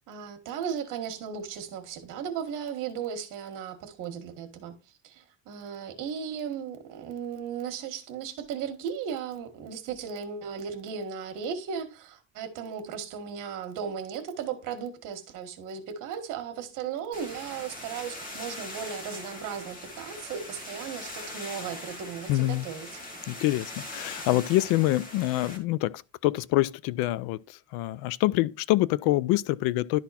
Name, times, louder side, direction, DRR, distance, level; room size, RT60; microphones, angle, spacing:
voice 1, 0.1-4.8 5.0-23.0, right 7 dB, 55° right, 1.7 m, -36 dB
sound 1, 17.1-25.6, left 1 dB, 25° left, 1.7 m, -41 dB
voice 2, 22.3-22.7 23.3-30.0, left 17 dB, 70° left, 0.5 m, -26 dB
11.5 x 4.1 x 4.2 m
cardioid pair, 170°, 37 cm